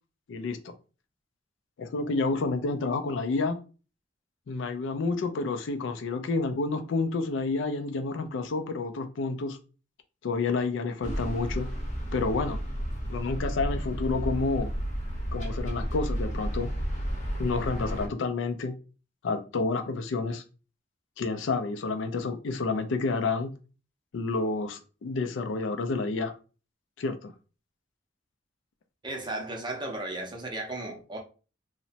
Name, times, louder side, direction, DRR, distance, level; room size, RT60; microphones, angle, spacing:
voice 1, 0.3-0.7 1.8-3.6 4.5-9.6 10.2-11.7 12.1-12.6 13.1-14.7 15.3-16.7 17.4-18.8 19.2-20.4 21.2-23.5 24.1-26.3 27.0-27.3, left 3 dB, 70° left, 0.4 m, -29 dB
sound 1, 11.0-18.1, equal, 40° left, 0.7 m, -32 dB
voice 2, 29.0-31.2, right 2 dB, 25° right, 0.5 m, -35 dB
2.9 x 2.1 x 2.7 m
head